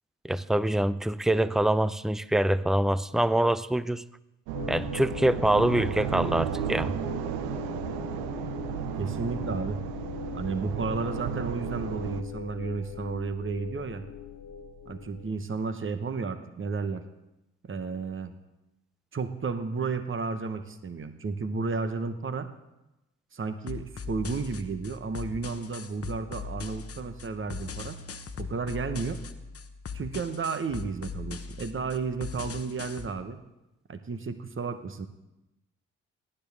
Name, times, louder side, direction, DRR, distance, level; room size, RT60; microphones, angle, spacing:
voice 1, 0.2-4.0 4.7-6.9, right 1 dB, ahead, 17 dB, 0.5 m, -25 dB
sound 1, 4.5-15.3, left 8 dB, 65° left, 1.6 m, -40 dB
sound 2, 4.5-12.2, right 10 dB, 80° right, 0.7 m, -34 dB
voice 2, 9.0-9.8 10.3-14.0 14.8-17.0 17.6-18.3 19.1-22.5 23.3-28.0 28.4-29.2 29.9-33.4 33.9-35.1, right 4 dB, 35° right, 9 dB, 1.3 m, -32 dB
sound 3, 23.7-33.1, left 5 dB, 40° left, 1.1 m, -40 dB
18.5 x 10.0 x 3.6 m, 0.93 s
hypercardioid pair, 40°, 36 cm